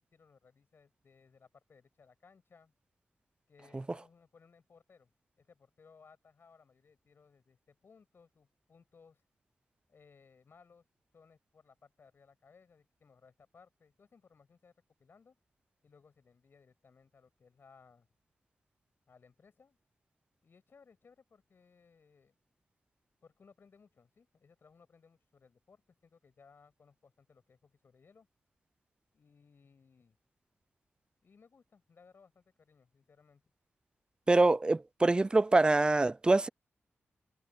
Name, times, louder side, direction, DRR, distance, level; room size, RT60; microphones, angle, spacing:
voice 1, 0.0-2.7 3.5-5.1 5.4-9.2 9.9-10.9 11.1-14.7 15.0-15.4 15.8-18.1 19.1-19.8 20.4-22.4 23.2-28.3 29.1-30.2 31.2-33.4, left 5 dB, 60° left, 7.2 m, -63 dB
voice 2, 34.3-36.5, right 2 dB, 20° right, 0.4 m, -25 dB
cardioid pair, 85°, 4 cm